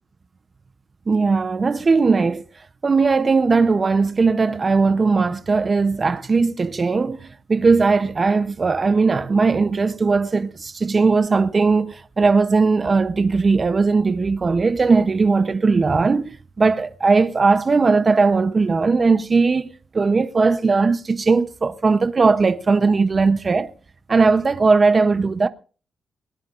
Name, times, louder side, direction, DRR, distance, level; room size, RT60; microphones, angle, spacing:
voice 1, 1.1-2.4 2.8-23.7 24.1-25.5, right 4 dB, 30° right, 0.6 m, -18 dB
21.5 x 19.0 x 2.4 m
wide cardioid pair, 140°, 0 cm